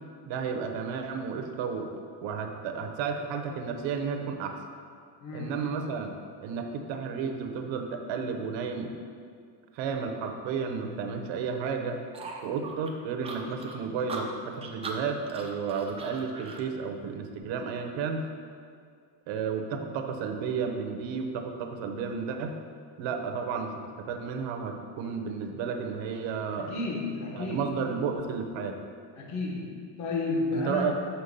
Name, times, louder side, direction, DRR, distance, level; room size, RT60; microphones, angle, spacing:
voice 1, 0.2-4.6 5.3-6.1 6.4-9.0 9.7-12.0 12.4-18.2 19.3-22.5 23.0-26.7 27.3-28.8 30.5-30.9, right 5 dB, 65° right, 5 dB, 1.0 m, -32 dB
voice 2, 5.2-5.6 26.6-27.7 29.2-30.9, left 3 dB, 35° left, -3 dB, 1.2 m, -32 dB
sound 1, 12.1-16.7, right 3 dB, 15° right, 0.4 m, -40 dB
6.3 x 5.8 x 6.7 m, 2.2 s
cardioid pair, 170°, 48 cm